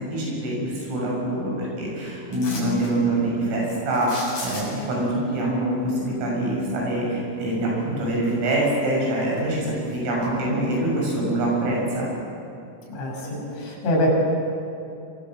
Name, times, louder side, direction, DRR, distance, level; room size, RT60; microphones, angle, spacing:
voice 1, 0.0-12.1, right 1 dB, 80° right, -3 dB, 9.5 m, -25 dB
sound 1, 2.3-2.9 3.9-5.0 7.5-7.6 8.1-8.8 9.2-10.3 10.7-10.8, left 2 dB, 45° left, 8.9 m, -37 dB
voice 2, 12.9-14.1, equal, 65° left, -1 dB, 8.4 m, -25 dB
26.5 x 24.0 x 7.7 m, 2.6 s
omnidirectional pair, 5.9 m